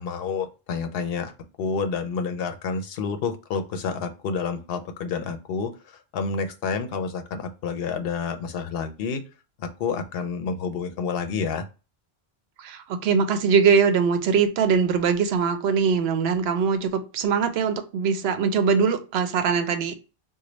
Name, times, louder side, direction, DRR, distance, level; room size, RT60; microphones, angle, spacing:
voice 1, 0.0-1.3 1.6-9.2 9.6-11.7, left 5 dB, 70° left, 0.7 m, -29 dB
voice 2, 12.6-19.9, right 6 dB, 75° right, 0.8 m, -22 dB
3.2 x 2.2 x 3.8 m
omnidirectional pair, 1.1 m